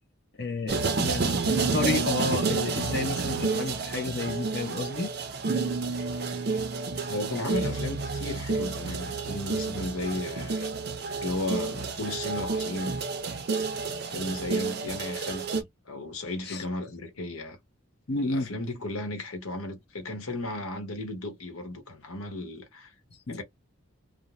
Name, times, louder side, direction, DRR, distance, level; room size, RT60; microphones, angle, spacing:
voice 1, 0.4-1.3 1.7-5.1 16.5-16.6 18.1-18.5 23.3-23.4, left 3 dB, 50° left, 0.7 m, -31 dB
sound 1, 0.7-15.6, right 4 dB, 45° right, 0.5 m, -30 dB
voice 2, 7.1-10.7 11.2-12.9 14.0-17.6 18.2-22.9 23.3-23.4, left 2 dB, 85° left, 1.0 m, -35 dB
2.5 x 2.1 x 2.9 m
head